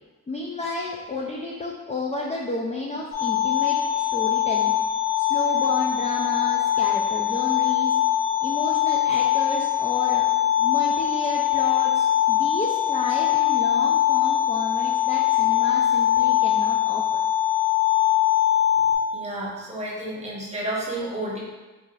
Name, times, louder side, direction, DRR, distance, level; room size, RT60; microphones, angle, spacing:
voice 1, 0.3-4.7 5.2-8.0 8.4-10.3 10.6-17.2, left 2 dB, 20° left, -2 dB, 0.3 m, -31 dB
sound 1, 3.1-18.9, left 12 dB, 90° left, 1.4 m, -22 dB
voice 2, 19.1-21.4, right 1 dB, 20° right, -5 dB, 1.0 m, -31 dB
4.7 x 2.7 x 2.3 m, 1.2 s
cardioid pair, 95°, 36 cm